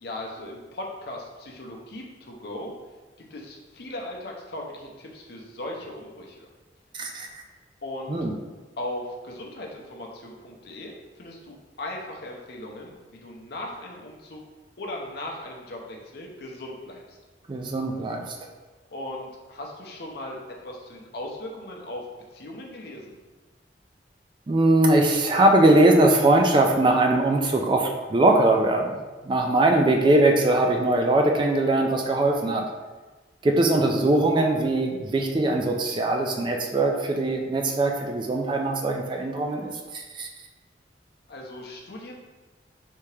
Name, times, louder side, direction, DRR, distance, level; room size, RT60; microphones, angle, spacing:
voice 1, 0.0-2.7 3.2-6.5 7.8-8.2 8.8-14.4 14.8-17.2 18.9-22.1 22.3-23.2 41.3-42.1, left 1 dB, 60° left, -1 dB, 0.6 m, -38 dB
voice 2, 6.9-7.3 8.1-8.3 17.5-18.2 24.5-29.0 29.2-32.7 33.4-40.3, right 2 dB, 25° right, 2 dB, 0.3 m, -21 dB
3.4 x 2.8 x 3.2 m, 1.3 s
head